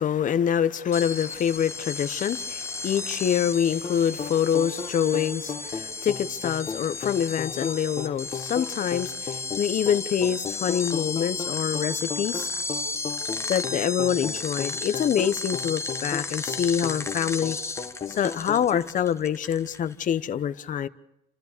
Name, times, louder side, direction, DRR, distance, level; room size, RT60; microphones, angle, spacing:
voice 1, 0.0-12.5 13.5-17.6 18.2-20.9, left 9 dB, 50° left, 0.9 m, -26 dB
sound 1, 0.9-20.1, left 3 dB, 15° left, 0.8 m, -34 dB
sound 2, 3.8-18.9, left 6 dB, 35° left, 1.4 m, -36 dB
30.0 x 13.0 x 6.7 m
cardioid pair, 110°, 17 cm